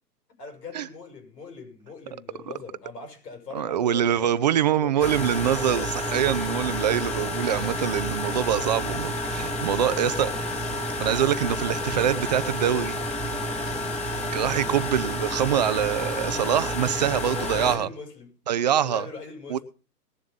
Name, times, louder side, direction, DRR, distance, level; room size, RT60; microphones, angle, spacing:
voice 1, 0.4-5.2 15.8-16.0 17.0-18.3 18.8-19.6, left 4 dB, 75° left, 6.9 m, -41 dB
voice 2, 3.5-10.5 11.0-13.0 14.3-17.9 18.5-19.1 19.5-19.6, right 9 dB, 25° right, 0.5 m, -24 dB
sound 1, 5.0-17.8, left 1 dB, 15° left, 3.2 m, -30 dB
20.0 x 7.2 x 5.5 m
hypercardioid pair, 140°, 49 cm